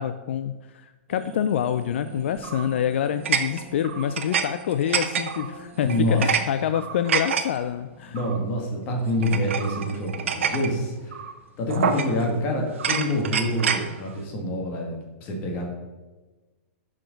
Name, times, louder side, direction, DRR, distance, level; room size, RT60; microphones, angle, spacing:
voice 1, 0.0-8.2 11.7-12.1, left 9 dB, 65° left, 11 dB, 0.4 m, -27 dB
sound 1, 1.1-6.2, right 2 dB, 40° right, 1.6 m, -43 dB
sound 2, 2.4-2.7 3.3-4.5 4.7-5.5 5.9-6.4 6.7-7.4 8.2-8.4 9.2-10.7 11.1-11.3 11.7-12.3 12.7-13.8, right 7 dB, 85° right, 0.8 m, -27 dB
voice 2, 5.8-6.3 8.1-11.2 11.6-15.7, left 1 dB, 30° left, 1 dB, 1.7 m, -26 dB
6.9 x 6.0 x 5.1 m, 1.2 s
hypercardioid pair, 160°, 7 cm